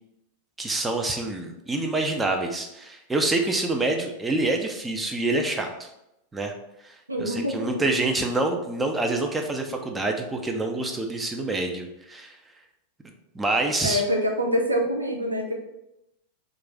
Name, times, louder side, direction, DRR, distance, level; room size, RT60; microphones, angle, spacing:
voice 1, 0.6-5.9 6.3-6.5 6.8-12.4 13.0-14.0, right 2 dB, 10° right, 3 dB, 0.5 m, -27 dB
voice 2, 7.1-7.7 13.8-15.5, equal, 85° right, 1 dB, 0.5 m, -25 dB
2.5 x 2.4 x 3.8 m, 0.87 s
figure-of-eight pair, 90°, 0 cm